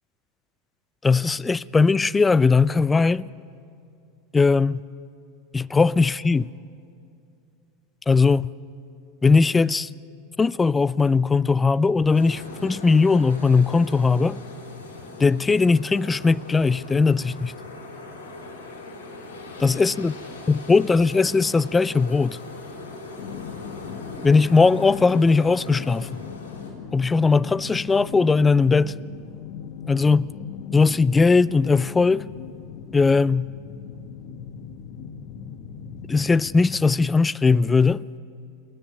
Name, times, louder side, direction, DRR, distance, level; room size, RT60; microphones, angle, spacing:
voice 1, 1.0-3.2 4.3-4.8 5.5-6.5 8.1-8.5 9.2-9.9 10.4-14.4 15.2-17.5 19.6-20.1 20.5-22.4 24.2-26.2 26.9-29.0 29.9-30.3 30.7-32.3 32.9-33.5 36.1-38.0, left 4 dB, 15° left, 0.4 m, -19 dB
sound 1, 12.1-26.7, left 2 dB, 80° left, 4.3 m, -40 dB
sound 2, 23.2-36.7, left 7 dB, 55° left, 1.2 m, -39 dB
28.5 x 10.0 x 9.2 m
hypercardioid pair, 90°, 0 cm